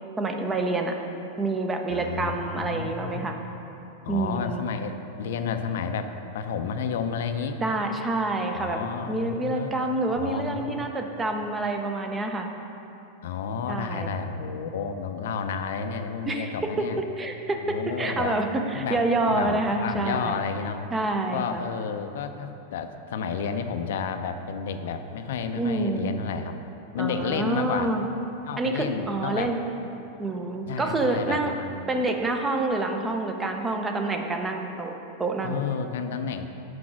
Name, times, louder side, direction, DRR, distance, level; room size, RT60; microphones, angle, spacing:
voice 1, 0.2-0.9 1.4-3.4 4.1-4.6 7.6-12.5 13.7-14.1 16.3-16.5 17.2-20.4 20.9-21.6 25.5-26.1 27.0-28.1 28.6-29.6 30.2-31.5 31.9-35.6, right 2 dB, 15° right, 4 dB, 0.5 m, -27 dB
voice 2, 1.9-3.4 4.0-7.6 8.6-9.9 10.2-10.9 13.2-17.0 17.6-18.4 18.7-19.0 19.3-20.8 21.3-26.6 26.9-27.9 28.4-29.5 30.7-32.1 35.4-36.5, left 6 dB, 75° left, 8 dB, 0.4 m, -31 dB
6.1 x 4.8 x 6.1 m, 2.9 s
supercardioid pair, 155°, 0 cm